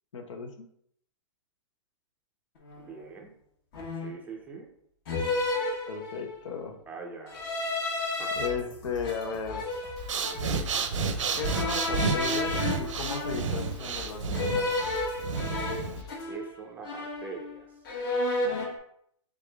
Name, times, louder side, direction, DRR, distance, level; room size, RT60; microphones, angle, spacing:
voice 1, 0.1-0.7 5.9-6.8 8.3-9.7 11.4-14.7, left 5 dB, 80° left, 3 dB, 1.0 m, -35 dB
sound 1, 2.6-2.9 3.7-4.3 5.1-6.5 7.3-8.5 9.0-10.6 11.4-13.7 14.3-16.6 16.8-17.6 17.8-18.8, left 2 dB, 45° left, 1.1 m, -32 dB
voice 2, 2.8-3.3 4.0-4.7 6.9-7.5 8.2-8.3 16.3-17.7, right 5 dB, 10° right, 1 dB, 0.5 m, -42 dB
sound 2, 8.3-16.3, left 5 dB, 25° left, 1.3 m, -46 dB
Breathing, 10.0-16.0, right 4 dB, 85° right, 0.7 m, -31 dB
3.7 x 3.6 x 3.4 m, 0.68 s
hypercardioid pair, 150°, 16 cm